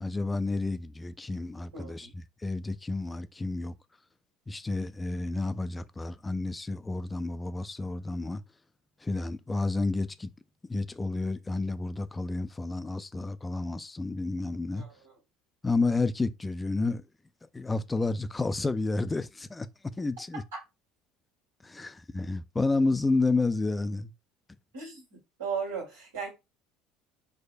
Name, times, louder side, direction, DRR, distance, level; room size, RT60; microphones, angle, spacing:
voice 1, 0.0-3.7 4.5-8.4 9.0-10.3 10.6-14.9 15.6-17.0 17.5-19.7 20.0-20.4 21.6-24.1, left 3 dB, 15° left, 0.3 m, -30 dB
voice 2, 1.7-2.1 14.8-15.1 24.7-25.0 25.4-26.3, right 6 dB, 80° right, 1.7 m, -36 dB
4.7 x 2.1 x 2.5 m
hypercardioid pair, 65°, 0 cm